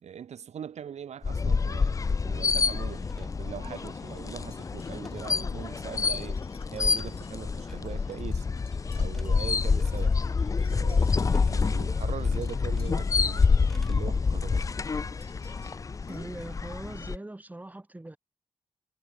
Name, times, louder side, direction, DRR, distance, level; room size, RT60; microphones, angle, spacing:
voice 1, 0.0-6.4 6.7-8.5 8.9-10.2 10.7-14.7, right 8 dB, 90° right, 1.0 m, -41 dB
sound 1, 1.2-17.2, left 4 dB, 30° left, 0.5 m, -27 dB
sound 2, 2.7-6.2 6.4-8.3 8.7-9.4 9.6-14.1 14.3-14.7, equal, 5° left, 7.4 m, -61 dB
sound 3, 4.4-16.2, left 6 dB, 60° left, 4.3 m, -59 dB
voice 2, 16.1-18.2, right 2 dB, 15° right, 5.5 m, -41 dB
wide cardioid pair, 140°, 11 cm